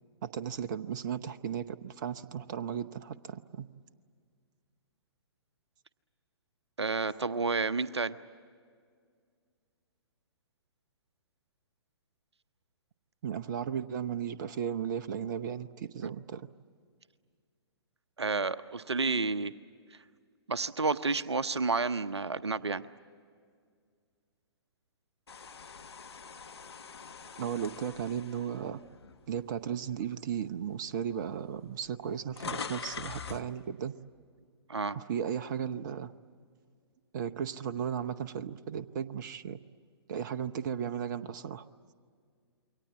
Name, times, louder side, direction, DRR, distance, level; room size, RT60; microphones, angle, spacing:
voice 1, 0.2-3.7 13.2-16.5 27.4-28.8 29.3-33.9 34.9-36.1 37.1-39.6 40.1-41.7, right 8 dB, 45° right, 12 dB, 0.9 m, -35 dB
voice 2, 6.8-8.2 18.2-19.5 20.5-22.9 34.7-35.0, right 4 dB, 75° right, 14 dB, 0.8 m, -30 dB
sound 1, 25.3-29.5 30.0-30.2 31.1-31.2 31.4-33.5, left 6 dB, 70° left, 1.3 m, -43 dB
28.0 x 23.5 x 8.4 m, 2.1 s
figure-of-eight pair, 120°, 14 cm